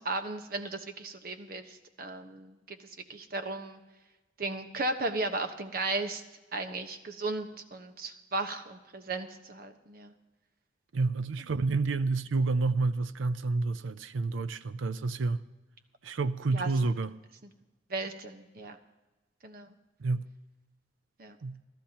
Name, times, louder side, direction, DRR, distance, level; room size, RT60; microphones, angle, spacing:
voice 1, 0.0-2.8 3.1-3.8 4.4-6.2 6.5-10.1 16.5-16.7 17.9-18.8 19.4-19.7 21.2-21.4, right 2 dB, 50° right, 1.1 m, -35 dB
voice 2, 10.9-15.4 16.0-17.1 20.0-20.3 21.4-21.6, right 3 dB, 90° right, 0.5 m, -29 dB
28.5 x 13.0 x 2.9 m
head